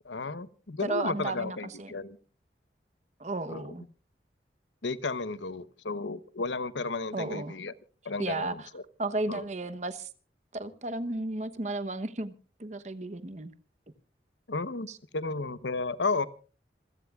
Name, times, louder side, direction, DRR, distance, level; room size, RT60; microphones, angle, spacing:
voice 1, 0.0-2.2 3.5-3.6 4.8-7.7 8.0-8.8 9.3-9.4 14.5-14.9 15.1-16.3, left 3 dB, 90° left, 0.9 m, -33 dB
voice 2, 0.8-1.9 3.2-3.8 7.1-7.5 8.2-8.7 9.0-10.1 10.5-12.3 12.6-13.5 14.9-15.0, right 2 dB, 40° right, 1.0 m, -33 dB
26.5 x 16.0 x 2.4 m
head